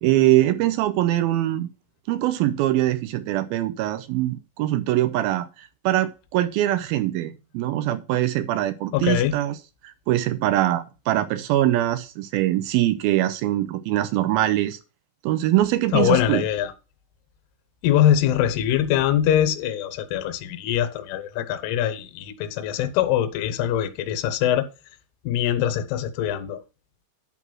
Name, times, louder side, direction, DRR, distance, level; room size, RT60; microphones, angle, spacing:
voice 1, 0.0-1.7 2.1-9.6 9.8-14.8 15.2-16.4, right 14 dB, 85° right, 2.1 m, -23 dB
voice 2, 8.9-9.4 15.9-16.7 17.8-24.7 25.3-26.6, left 10 dB, 75° left, 2.8 m, -23 dB
11.0 x 4.1 x 6.1 m
omnidirectional pair, 5.0 m